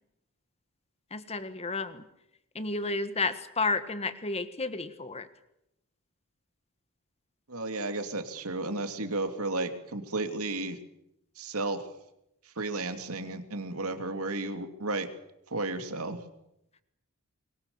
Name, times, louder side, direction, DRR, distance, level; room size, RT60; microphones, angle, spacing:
voice 1, 1.1-2.0 2.5-5.3, left 3 dB, 30° left, 12 dB, 1.5 m, -31 dB
voice 2, 7.5-10.8 11.4-11.8 12.4-15.1 15.5-16.2, right 2 dB, 75° right, 7 dB, 2.8 m, -33 dB
25.5 x 22.0 x 7.1 m, 0.82 s
head